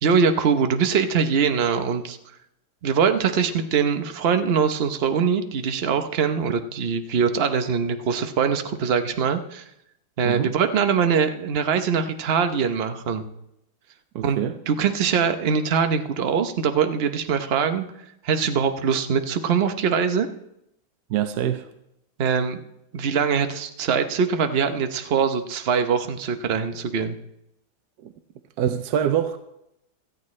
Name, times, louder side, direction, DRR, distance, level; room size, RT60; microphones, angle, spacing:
voice 1, 0.0-2.2 2.8-9.6 10.2-13.3 14.2-14.4 14.7-17.8 18.2-20.3 22.2-22.6 22.9-27.2, right 6 dB, 50° right, 0.7 m, -22 dB
voice 2, 14.1-14.6 21.1-21.7 28.0-28.1 28.6-29.4, right 10 dB, 65° right, 1.0 m, -24 dB
17.0 x 13.5 x 3.2 m
omnidirectional pair, 2.1 m